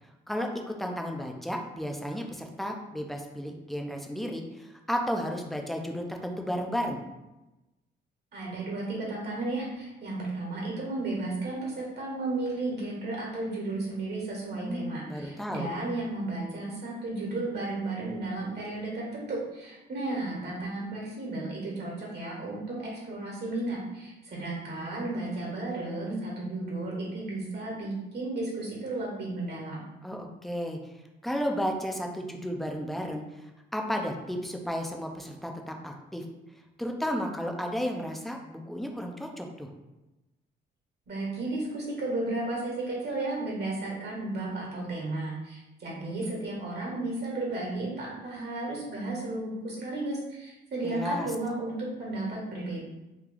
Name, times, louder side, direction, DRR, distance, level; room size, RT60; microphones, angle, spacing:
voice 1, 0.3-7.0 14.5-15.7 30.0-36.2 36.8-39.7 50.8-51.3, equal, ahead, 2 dB, 0.5 m, -33 dB
voice 2, 8.3-29.8 41.1-52.8, right 2 dB, 60° right, -3 dB, 1.3 m, -33 dB
3.0 x 2.3 x 3.8 m, 1.0 s
cardioid pair, 90°, 20 cm